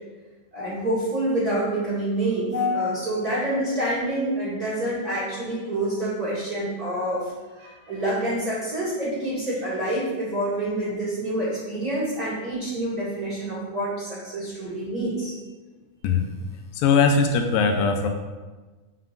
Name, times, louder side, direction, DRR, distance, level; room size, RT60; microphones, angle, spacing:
voice 1, 0.5-15.3, right 1 dB, 30° right, -10 dB, 1.9 m, -27 dB
voice 2, 16.7-18.1, left 5 dB, 85° left, 4 dB, 2.2 m, -20 dB
8.3 x 5.7 x 2.5 m, 1.2 s
omnidirectional pair, 4.2 m